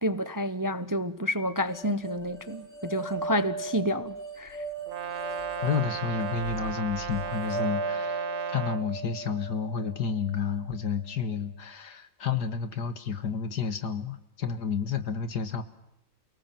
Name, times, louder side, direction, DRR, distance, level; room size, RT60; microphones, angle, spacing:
voice 1, 0.0-4.6, equal, 20° right, 0.5 m, -29 dB
sound 1, 1.7-10.9, right 3 dB, 25° left, 4.7 m, -37 dB
Brass instrument, 4.9-8.9, right 9 dB, 50° right, 1.4 m, -35 dB
voice 2, 5.6-15.6, left 6 dB, 65° left, 2.2 m, -31 dB
29.0 x 18.5 x 7.5 m
omnidirectional pair, 2.0 m